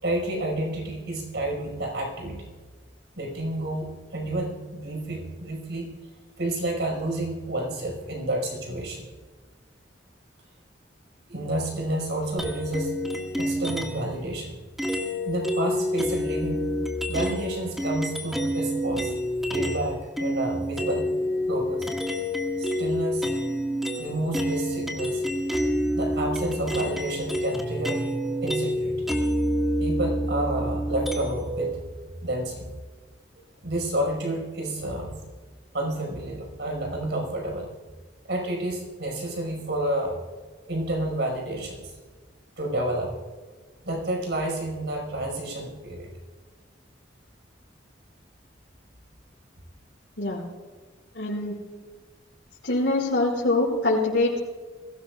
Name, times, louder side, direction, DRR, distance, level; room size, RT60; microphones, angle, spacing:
voice 1, 0.0-2.5 3.2-5.9 6.4-9.1 11.3-13.0 13.3-14.6 15.2-16.6 17.1-19.1 19.5-21.1 21.5-21.9 22.6-23.3 24.0-25.2 25.9-28.0 28.4-29.1 29.8-31.8 32.2-32.7 33.6-35.2 35.7-37.7 38.2-40.2 40.7-41.9 42.6-43.2 43.8-46.1, right 1 dB, 70° right, 1 dB, 5.1 m, -30 dB
sound 1, 12.4-14.1 14.8-19.9 20.2-31.6, equal, ahead, 1.7 m, -28 dB
voice 2, 51.1-51.6 52.6-54.4, left 2 dB, 80° left, -8 dB, 5.2 m, -24 dB
22.0 x 17.5 x 2.4 m, 1.4 s
head